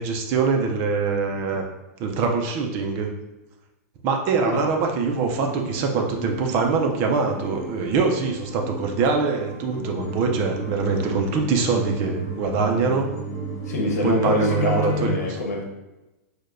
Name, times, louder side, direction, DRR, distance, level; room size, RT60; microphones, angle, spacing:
voice 1, 0.0-1.6 2.0-3.1 4.0-13.1 14.0-15.4, right 4 dB, 25° right, 2 dB, 0.4 m, -23 dB
sound 1, 4.9-15.1, right 1 dB, 35° left, 0.9 m, -33 dB
voice 2, 13.7-15.6, left 2 dB, 85° left, 0 dB, 1.1 m, -25 dB
6.4 x 2.2 x 2.5 m, 1.0 s
supercardioid pair, 165°, 9 cm